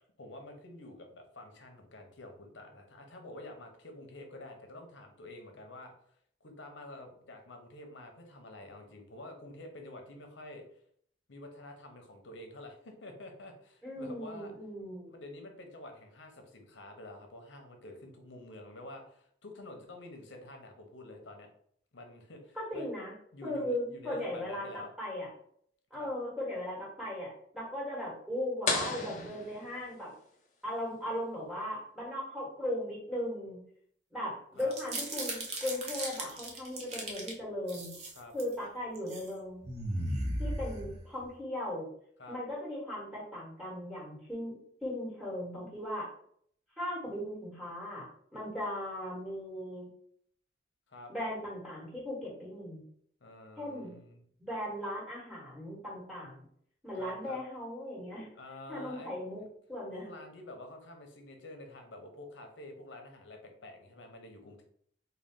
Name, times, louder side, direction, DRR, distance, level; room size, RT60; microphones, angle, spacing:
voice 1, 0.2-5.9 6.4-10.6 11.3-14.5 15.0-21.5 21.9-22.9 23.3-24.9 26.0-26.1 34.6-34.7 38.2-38.3 42.2-42.4 50.9-51.1 53.2-54.2 56.9-57.4 58.3-59.5 59.9-64.6, left 1 dB, 80° left, 4 dB, 0.8 m, -48 dB
voice 2, 13.8-15.1 22.5-23.1 23.4-24.7 25.0-25.3 25.9-30.1 30.6-33.6 34.1-37.9 38.3-39.6 40.4-41.9 42.3-44.6 44.8-46.1 46.8-49.9 51.1-52.8 53.6-54.0 54.4-56.4 56.8-58.3 58.7-59.4 59.7-60.1, left 1 dB, 5° right, -6 dB, 1.4 m, -37 dB
sound 1, 28.7-30.3, left 3 dB, 40° left, 0.6 m, -35 dB
sound 2, 34.6-37.3 37.7-38.5 39.0-39.3 39.6-41.3, right 1 dB, 35° right, 0.7 m, -36 dB
3.8 x 2.3 x 3.6 m, 0.64 s
head